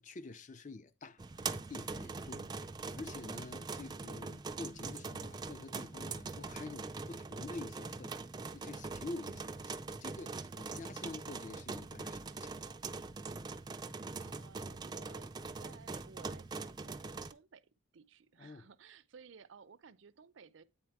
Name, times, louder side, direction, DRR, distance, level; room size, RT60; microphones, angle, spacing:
voice 1, 0.0-2.5 3.0-8.3 8.5-12.8 18.4-18.6, left 3 dB, 40° left, 0.5 m, -48 dB
sound 1, 1.2-17.3, right 4 dB, 20° right, 0.4 m, -43 dB
voice 2, 2.4-2.8 10.2-10.7 13.6-20.6, right 5 dB, 70° right, 0.5 m, -58 dB
8.8 x 4.1 x 4.7 m
head